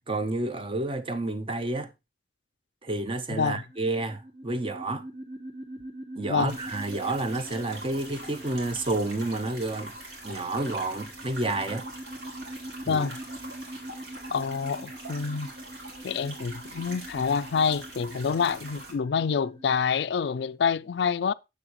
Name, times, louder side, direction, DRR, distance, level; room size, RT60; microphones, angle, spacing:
voice 1, 0.1-1.9 2.8-5.0 6.2-9.9 10.2-11.8 12.8-13.0, right 2 dB, 30° right, 0.7 m, -30 dB
voice 2, 3.3-3.6 6.3-6.5 12.9-13.2 14.3-15.5 16.0-21.3, left 6 dB, 75° left, 0.4 m, -27 dB
sound 1, 3.5-19.8, right 1 dB, 55° right, 2.1 m, -44 dB
sound 2, 6.5-18.9, right 2 dB, 75° right, 3.3 m, -43 dB
9.8 x 7.1 x 3.0 m
head